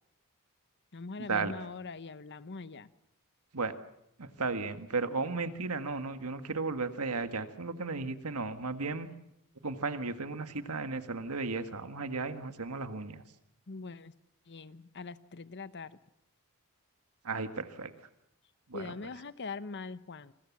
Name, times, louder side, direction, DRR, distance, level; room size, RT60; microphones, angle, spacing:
voice 1, 0.9-2.9 13.7-14.1 14.5-16.0 18.7-20.3, left 4 dB, 50° left, 0.9 m, -42 dB
voice 2, 4.2-9.1 9.6-13.2 17.2-17.9 18.7-18.9, right 3 dB, 80° right, 1.7 m, -34 dB
28.0 x 21.0 x 7.3 m
head